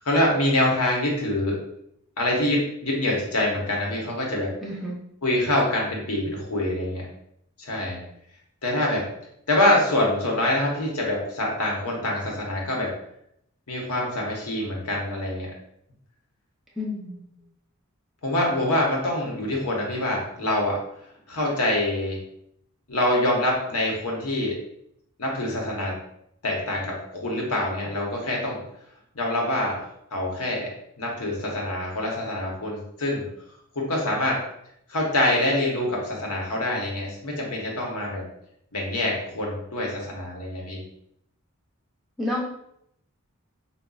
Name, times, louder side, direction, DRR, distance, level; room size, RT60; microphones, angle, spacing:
voice 1, 0.0-1.6 2.2-4.5 5.2-7.1 7.6-8.0 8.6-9.1 9.5-12.9 13.7-15.5 18.2-20.8 21.3-22.2 22.9-24.6 25.2-26.0 26.4-28.6 29.1-29.8 30.1-33.3 33.7-34.4 34.9-38.2 38.7-40.8, left 1 dB, 85° left, -2 dB, 1.0 m, -25 dB
voice 2, 4.6-4.9 16.8-17.3 42.2-42.6, left 1 dB, ahead, -5 dB, 0.6 m, -30 dB
5.3 x 2.2 x 2.4 m, 0.74 s
head